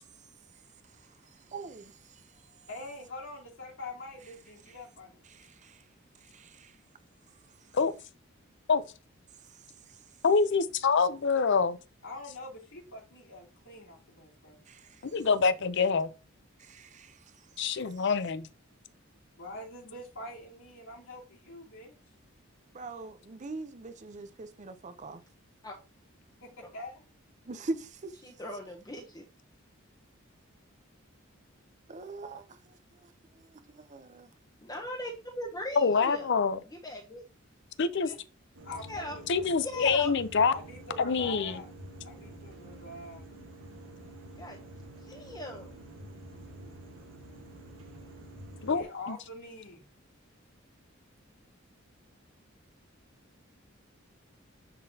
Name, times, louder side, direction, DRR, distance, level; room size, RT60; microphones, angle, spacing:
voice 1, 1.5-1.9 5.6-5.7 6.3-6.7 14.7-14.8 16.6-17.1 22.7-25.2 27.5-28.1 31.9-32.4 33.7-34.3, right 2 dB, 35° right, 0.6 m, -41 dB
voice 2, 2.7-5.2 12.0-14.6 19.4-22.0 26.4-27.0 38.6-39.4 40.4-41.7 42.0-43.3 48.6-49.8, left 2 dB, 80° left, 2.8 m, -44 dB
voice 3, 10.2-11.8 15.1-16.1 17.6-18.5 35.8-36.6 37.8-38.1 39.3-40.5 41.0-41.5 48.6-49.2, left 5 dB, 60° left, 0.6 m, -26 dB
voice 4, 28.2-29.2 34.6-36.3 36.7-37.2 38.0-38.1 38.9-39.1 39.6-40.1 44.4-44.6 45.0-45.8, left 1 dB, 20° left, 1.0 m, -39 dB
sound 1, 38.5-48.8, right 1 dB, 70° right, 1.4 m, -48 dB
10.0 x 3.9 x 2.8 m
head